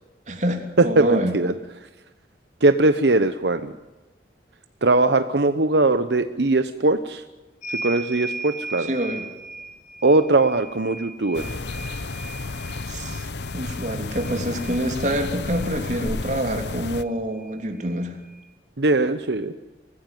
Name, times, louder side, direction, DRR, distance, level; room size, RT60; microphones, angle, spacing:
voice 1, 0.3-1.4 8.8-9.2 12.9-13.3 13.5-18.2, right 1 dB, 45° right, 4 dB, 3.3 m, -26 dB
voice 2, 0.8-1.5 2.6-3.7 4.8-7.2 7.8-8.9 10.0-11.4 18.8-19.5, right 2 dB, 75° right, 10 dB, 0.9 m, -20 dB
sound 1, 7.6-15.7 17.0-17.1 17.4-18.5, right 3 dB, 45° left, 2.2 m, -38 dB
sound 2, 11.3-17.0, left 3 dB, 80° left, 0.9 m, -32 dB
24.5 x 16.0 x 9.2 m, 1.2 s
head